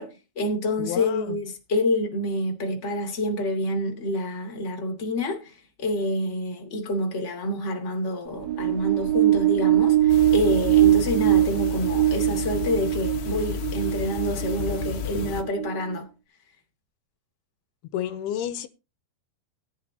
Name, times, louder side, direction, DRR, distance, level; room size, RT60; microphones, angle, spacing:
voice 1, 0.0-5.5 5.8-16.1, left 1 dB, 20° left, 2.4 m, -28 dB
voice 2, 0.8-1.4 17.9-18.7, left 10 dB, 85° left, 2.9 m, -30 dB
sound 1, 8.3-16.0, right 13 dB, 60° right, 3.3 m, -22 dB
sound 2, 10.1-15.4, left 11 dB, 65° left, 2.8 m, -33 dB
18.0 x 10.5 x 2.9 m
omnidirectional pair, 4.5 m